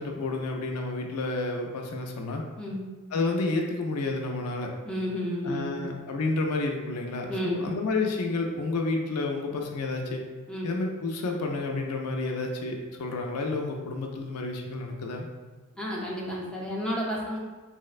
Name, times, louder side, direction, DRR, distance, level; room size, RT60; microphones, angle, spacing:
voice 1, 0.0-2.5 3.1-4.7 5.4-10.2 10.6-15.3, left 3 dB, 85° left, 2 dB, 0.4 m, -30 dB
voice 2, 4.9-5.9 7.3-7.7 10.5-10.7 15.8-17.4, equal, 5° left, -5 dB, 0.5 m, -31 dB
4.1 x 2.0 x 2.4 m, 1.3 s
head